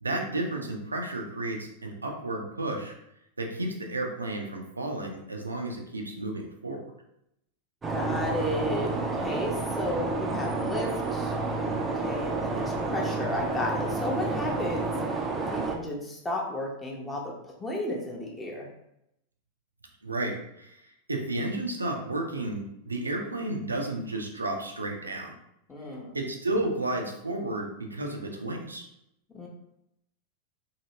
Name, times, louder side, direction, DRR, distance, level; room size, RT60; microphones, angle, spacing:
voice 1, 0.0-2.9 3.4-6.9 20.0-25.3 26.1-28.8, right 2 dB, 80° right, 2 dB, 0.4 m, -32 dB
sound 1, 7.8-15.8, right 3 dB, 15° right, 0.4 m, -30 dB
voice 2, 7.9-11.3 11.9-15.2 15.5-18.7 25.7-26.1 29.3-29.5, left 1 dB, 15° left, -1 dB, 0.7 m, -33 dB
2.8 x 2.7 x 2.7 m, 0.79 s
figure-of-eight pair, 90°, 0 cm